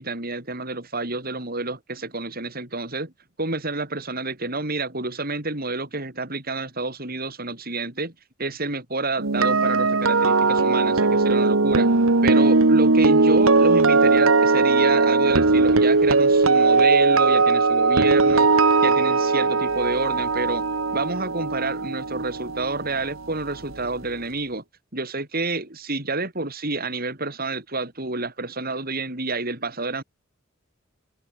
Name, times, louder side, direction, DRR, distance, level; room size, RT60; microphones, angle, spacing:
voice 1, 0.0-3.1 3.4-8.1 8.4-11.9 12.2-20.6 20.9-24.6 24.9-30.0, right 3 dB, 45° right, 6.6 m, -29 dB
sound 1, 9.2-23.3 23.5-23.8, right 3 dB, 80° right, 1.3 m, -19 dB
head